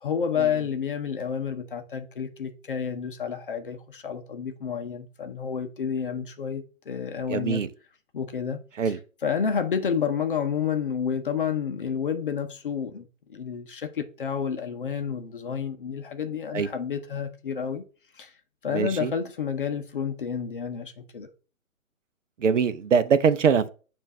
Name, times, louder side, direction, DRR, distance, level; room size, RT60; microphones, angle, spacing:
voice 1, 0.0-7.6 8.1-9.0 9.2-17.8 18.1-18.3 18.6-21.3, left 7 dB, 40° left, 0.7 m, -30 dB
voice 2, 7.3-7.7 8.8-9.0 16.5-16.7 18.7-19.1 22.4-23.7, right 6 dB, 65° right, 0.7 m, -22 dB
7.1 x 2.6 x 5.4 m
hypercardioid pair, 155°, 41 cm